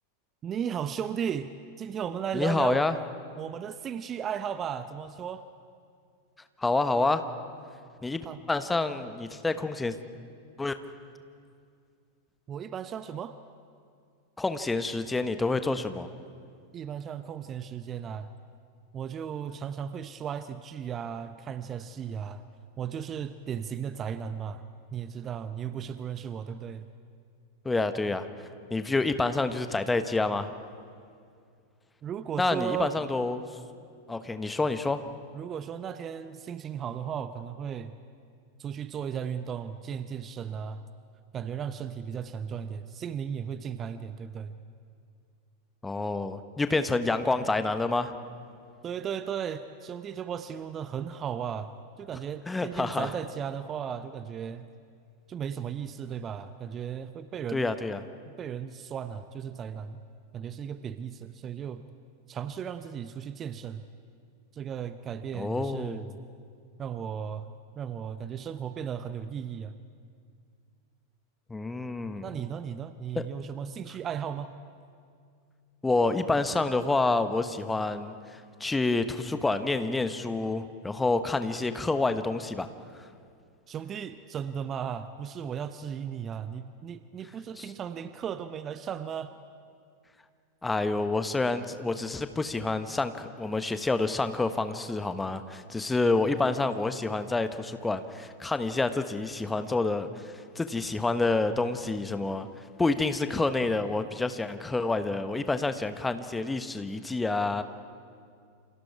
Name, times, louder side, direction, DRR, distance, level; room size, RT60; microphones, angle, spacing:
voice 1, 0.4-1.5 1.8-2.8 3.4-5.4 8.2-8.4 12.5-13.4 16.7-18.3 18.9-22.5 22.8-24.6 24.9-26.9 32.0-32.9 35.3-38.0 38.6-40.8 41.3-44.6 48.8-51.7 52.0-54.7 55.3-57.7 58.3-60.0 60.3-61.9 62.3-63.9 64.5-66.1 66.8-67.5 67.8-69.7 72.2-74.5 83.7-89.3, right 8 dB, 25° right, 12 dB, 0.8 m, -35 dB
voice 2, 2.3-3.0 6.6-7.2 8.0-8.2 8.5-10.0 10.6-10.7 14.4-16.1 27.6-28.3 28.7-30.5 32.4-33.5 34.1-35.0 45.8-48.1 52.5-53.1 57.5-58.0 65.3-66.1 71.5-72.3 75.8-82.7 82.9-83.0 87.6-87.7 90.6-102.5 102.8-107.6, left 3 dB, 10° left, 10 dB, 1.2 m, -28 dB
28.5 x 27.0 x 4.8 m, 2.3 s
figure-of-eight pair, 90°, 0 cm